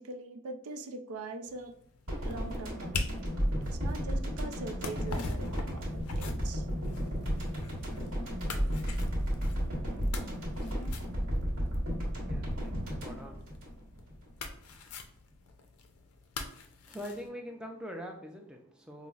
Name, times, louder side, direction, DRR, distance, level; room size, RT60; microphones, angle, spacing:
voice 1, 0.0-1.7 2.2-3.3 3.7-6.7, right 3 dB, 90° right, 7 dB, 0.4 m, -43 dB
sound 1, 1.5-17.3, left 4 dB, 90° left, 0.5 m, -45 dB
sound 2, 2.1-14.3 14.5-14.7, equal, 60° right, 1.2 m, -33 dB
voice 2, 12.2-13.4 16.9-19.1, equal, 5° right, 1 dB, 0.3 m, -43 dB
5.3 x 2.0 x 2.3 m, 0.72 s
head